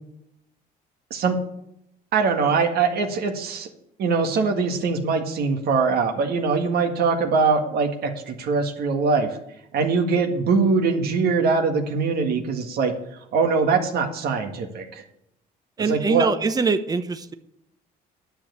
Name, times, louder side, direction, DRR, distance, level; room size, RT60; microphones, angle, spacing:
voice 1, 2.1-3.7 4.0-9.3 9.7-12.9 13.3-15.0 15.9-16.3, right 4 dB, 65° right, 4 dB, 1.8 m, -22 dB
voice 2, 15.8-17.3, right 4 dB, 20° right, 10 dB, 0.8 m, -23 dB
10.0 x 7.2 x 8.2 m, 0.78 s
cardioid pair, 110°, 17 cm